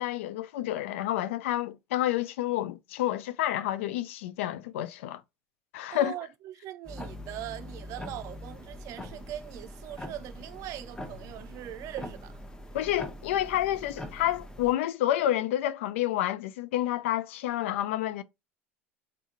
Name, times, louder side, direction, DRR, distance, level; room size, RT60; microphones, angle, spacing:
voice 1, 0.0-5.2 5.7-6.1 12.7-18.2, left 13 dB, 65° left, 0.4 m, -29 dB
voice 2, 5.9-12.4, right 12 dB, 50° right, 0.5 m, -41 dB
sound 1, 6.8-14.7, left 1 dB, 10° left, 0.9 m, -43 dB
3.5 x 2.7 x 4.0 m
figure-of-eight pair, 70°, 7 cm